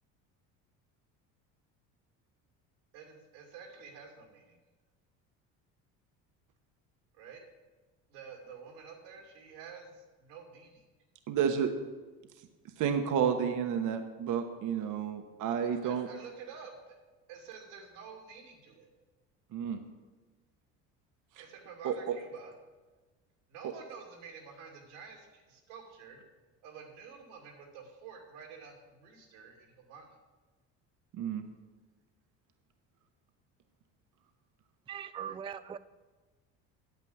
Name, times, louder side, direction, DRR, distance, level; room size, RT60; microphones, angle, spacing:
voice 1, 2.9-4.6 7.1-7.4 8.1-10.8 15.6-17.0 17.3-18.9 21.3-22.5 23.5-26.2 26.6-30.1, right 6 dB, 90° right, 2 dB, 2.6 m, -50 dB
voice 2, 11.3-11.7 12.8-16.1 19.5-19.8 21.4-21.5 21.8-22.0 23.6-23.7 31.1-31.4, right 8 dB, 60° right, 7 dB, 1.2 m, -31 dB
voice 3, 34.9-35.8, right 8 dB, 15° right, 13 dB, 0.3 m, -40 dB
9.3 x 8.2 x 7.9 m, 1.3 s
supercardioid pair, 90°, 35 cm